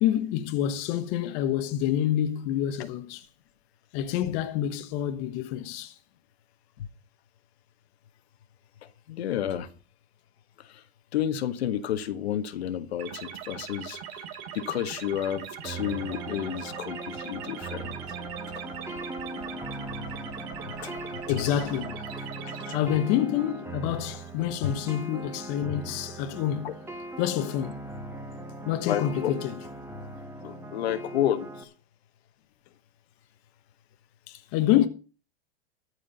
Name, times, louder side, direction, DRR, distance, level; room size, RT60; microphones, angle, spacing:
voice 1, 0.0-3.3 3.9-5.9 19.4-19.6 21.3-22.0 22.7-26.8 27.2-27.7 28.6-29.6 34.3-34.9, left 11 dB, 50° left, 1.3 m, -27 dB
voice 2, 9.1-9.7 10.6-10.8 11.1-14.2 14.5-18.0 20.7-20.9 21.3-21.4 22.5-22.8 24.6-24.7 26.6-26.7 28.8-29.3 30.4-31.7, left 10 dB, 80° left, 1.5 m, -31 dB
sound 1, 13.0-22.8, right 8 dB, 55° right, 2.9 m, -40 dB
sound 2, 15.6-31.6, right 2 dB, 10° right, 1.9 m, -39 dB
13.5 x 5.0 x 8.3 m
hypercardioid pair, 125°, 31 cm